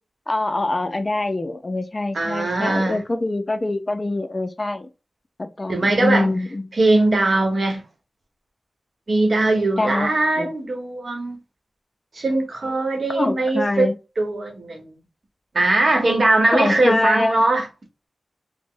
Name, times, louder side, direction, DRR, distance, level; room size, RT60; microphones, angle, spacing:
voice 1, 0.3-4.9 5.4-6.7 9.8-10.5 13.1-13.9 16.5-17.4, left 2 dB, 30° left, 0.3 m, -24 dB
voice 2, 2.1-3.0 5.7-6.3 6.7-7.8 9.1-11.4 12.1-13.9 14.2-15.0 15.5-17.7, right 2 dB, 55° right, 0.9 m, -20 dB
2.9 x 2.0 x 3.7 m
wide cardioid pair, 100°, 0 cm